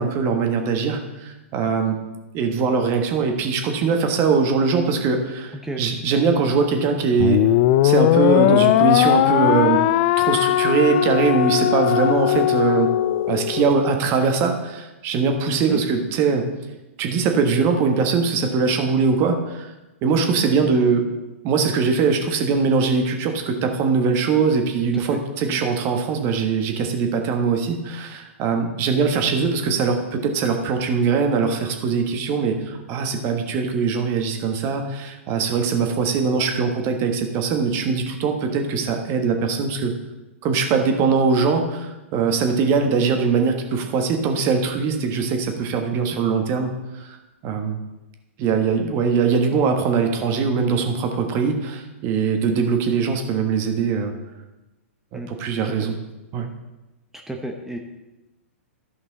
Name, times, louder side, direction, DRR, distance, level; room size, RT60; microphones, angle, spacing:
voice 1, 0.0-2.0 2.3-7.4 7.8-9.8 10.2-12.9 13.3-16.4 17.0-19.7 20.0-21.1 21.4-39.9 40.4-46.7 47.0-47.2 47.4-47.8 48.4-54.1 55.1-55.9 56.3-56.5, right 5 dB, 35° right, 4 dB, 1.4 m, -21 dB
sound 1, 7.2-13.7, left 13 dB, 40° left, 0.3 m, -19 dB
voice 2, 15.5-15.8 24.9-25.2 25.5-25.6 45.9-46.2 55.1-55.3 55.6-55.8 57.3-57.8, right 2 dB, 5° right, 3 dB, 0.8 m, -32 dB
12.5 x 5.4 x 4.1 m, 1.1 s
hypercardioid pair, 120°, 7 cm